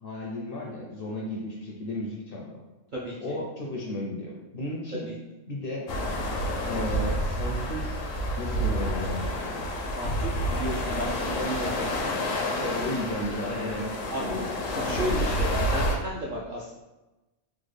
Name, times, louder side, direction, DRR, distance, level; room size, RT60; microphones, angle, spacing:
voice 1, 0.0-2.6 3.2-5.1 5.5-5.9 6.7-8.0 8.3-9.7 12.6-14.5, left 1 dB, 60° left, -2 dB, 0.6 m, -34 dB
voice 2, 2.9-3.3 5.1-5.2 10.0-11.8 13.4-13.8 14.1-14.3 14.7-16.7, equal, 65° right, -5 dB, 0.5 m, -34 dB
sound 1, 5.9-16.0, equal, 80° left, 1.0 m, -29 dB
3.5 x 2.1 x 3.3 m, 1.1 s
omnidirectional pair, 1.3 m